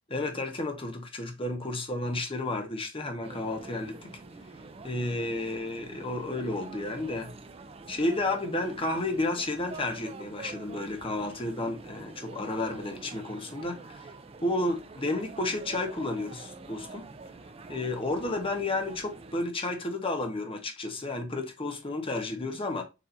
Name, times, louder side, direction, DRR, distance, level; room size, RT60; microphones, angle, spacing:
voice 1, 0.1-4.1 4.8-7.3 7.9-14.1 14.4-17.1 17.7-22.8, left 2 dB, 25° left, 1.0 m, -32 dB
sound 1, 3.2-19.5, right 3 dB, 25° right, 0.4 m, -46 dB
6.8 x 2.7 x 2.6 m
head